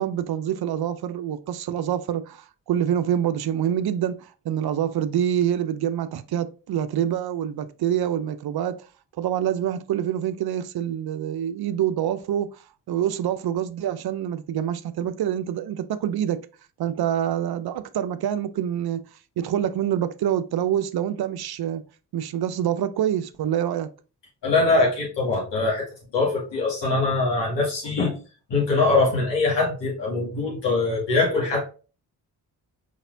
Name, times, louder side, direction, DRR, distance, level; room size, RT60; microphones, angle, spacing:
voice 1, 0.0-8.9 9.2-16.4 16.8-19.0 19.4-21.8 22.1-23.9, right 10 dB, 60° right, 0.5 m, -26 dB
voice 2, 24.4-25.9 26.1-28.1 28.5-31.7, left 3 dB, 75° left, 2.5 m, -22 dB
4.8 x 4.0 x 2.6 m
supercardioid pair, 45°, 42 cm